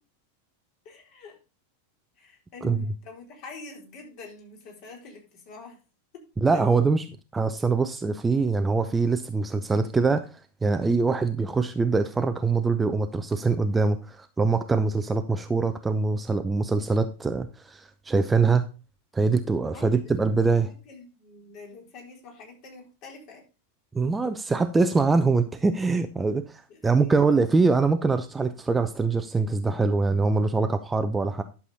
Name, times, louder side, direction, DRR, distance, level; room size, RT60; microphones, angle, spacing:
voice 1, 0.8-1.4 2.2-5.8 6.1-6.2 6.5-6.6 19.7-20.1 20.5-23.4 26.7-27.4, left 4 dB, 40° left, 0 dB, 4.0 m, -45 dB
voice 2, 6.4-7.0 7.3-18.6 19.1-20.7 23.9-31.4, right 4 dB, 10° right, 9 dB, 0.7 m, -23 dB
11.0 x 7.1 x 4.2 m, 0.33 s
figure-of-eight pair, 90°, 0 cm